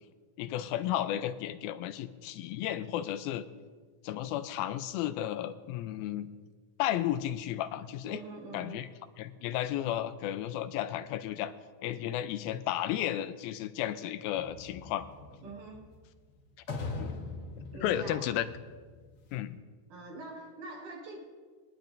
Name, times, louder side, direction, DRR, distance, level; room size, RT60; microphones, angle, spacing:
voice 1, 0.4-3.5 4.0-6.3 6.8-8.2 8.5-8.9 9.2-11.5 11.8-15.1 17.0-17.1 17.8-18.5 19.3-19.6, left 12 dB, 85° left, 11 dB, 2.4 m, -33 dB
voice 2, 8.0-8.9 15.4-15.9 17.7-18.4 19.9-21.2, right 2 dB, 65° right, -1 dB, 3.1 m, -44 dB
sound 1, 14.4-19.4, left 3 dB, 60° left, 1.5 m, -42 dB
23.5 x 10.5 x 2.6 m, 1.5 s
omnidirectional pair, 4.2 m